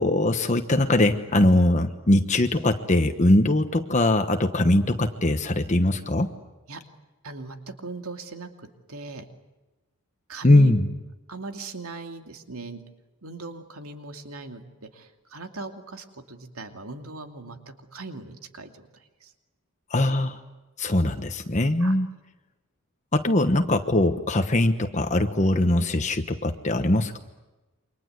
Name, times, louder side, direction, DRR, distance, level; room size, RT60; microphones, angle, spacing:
voice 1, 0.0-6.3 10.4-10.9 19.9-20.4 20.8-22.1 23.1-27.2, left 1 dB, 30° left, 7 dB, 1.1 m, -21 dB
voice 2, 7.2-7.6 7.8-8.5 8.9-9.2 10.3-10.7 11.3-12.8 13.2-18.7 19.2-19.3 21.8-21.9, right 3 dB, 75° right, 5 dB, 2.6 m, -39 dB
29.0 x 25.0 x 8.1 m, 1.1 s
head